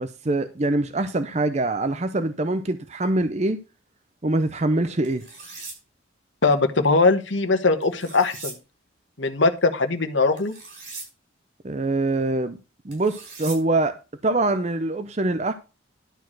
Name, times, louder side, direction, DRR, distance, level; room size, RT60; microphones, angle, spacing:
voice 1, 0.0-3.6 4.2-5.3 11.6-12.6 12.8-14.0 14.2-15.5, right 2 dB, 35° right, 0.6 m, -24 dB
sound 1, 5.0-5.8 7.8-8.5 10.4-11.1 12.9-13.6, right 3 dB, 60° right, 5.9 m, -39 dB
voice 2, 6.4-8.5 9.2-10.5, left 3 dB, 70° left, 1.3 m, -20 dB
11.5 x 4.7 x 6.1 m
head